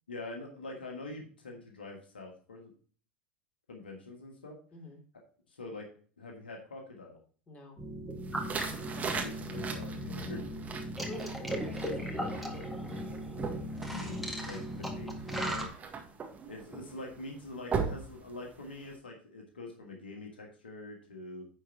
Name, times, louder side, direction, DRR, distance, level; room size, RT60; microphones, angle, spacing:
voice 1, 0.1-2.7 3.7-4.6 5.5-5.9 6.2-7.2 8.9-10.4 13.9-15.8 16.5-21.5, left 2 dB, 90° left, 1 dB, 1.5 m, -45 dB
voice 2, 7.5-7.8 9.0-9.4 11.1-12.6, left 1 dB, 25° left, 0 dB, 3.4 m, -48 dB
sound 1, 7.8-15.7, equal, ahead, 2.0 m, -37 dB
sound 2, 8.2-19.0, right 5 dB, 30° right, 1.7 m, -40 dB
10.0 x 4.6 x 4.4 m, 0.44 s
hypercardioid pair, 85°, 5 cm